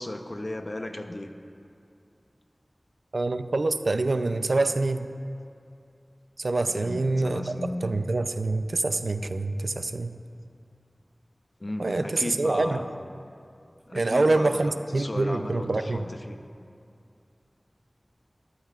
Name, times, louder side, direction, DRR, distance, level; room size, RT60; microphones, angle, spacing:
voice 1, 0.0-1.3 6.7-7.9 11.6-12.9 13.9-16.4, left 1 dB, 45° left, 5 dB, 0.8 m, -35 dB
voice 2, 3.1-5.1 6.4-10.2 11.8-12.8 13.9-16.1, right 2 dB, 80° right, 9 dB, 0.5 m, -26 dB
22.5 x 12.0 x 2.5 m, 2.5 s
wide cardioid pair, 50°, 0 cm